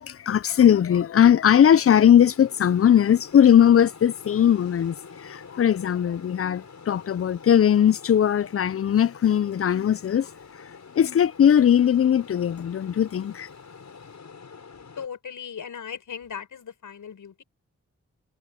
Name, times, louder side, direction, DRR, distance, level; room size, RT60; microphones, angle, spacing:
voice 1, 0.0-4.9 5.2-10.3 10.9-13.5, left 9 dB, 45° left, 0.5 m, -19 dB
sound 1, 1.4-15.1, left 5 dB, 65° left, 7.2 m, -46 dB
voice 2, 15.0-17.4, left 7 dB, 80° left, 6.3 m, -37 dB
cardioid pair, 50°, 31 cm